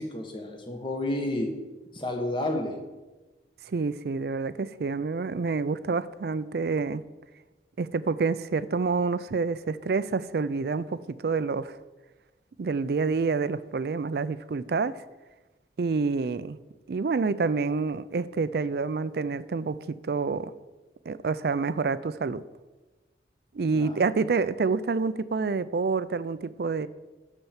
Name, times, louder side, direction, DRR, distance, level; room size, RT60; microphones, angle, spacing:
voice 1, 0.0-1.5 1.9-2.8 23.7-24.0, left 1 dB, 30° left, 2 dB, 1.4 m, -31 dB
voice 2, 3.6-7.0 7.8-11.8 12.6-15.0 15.8-16.6 16.9-20.5 21.1-22.4 23.5-26.9, right 4 dB, 60° right, 16 dB, 0.4 m, -28 dB
11.0 x 4.5 x 7.2 m, 1.2 s
head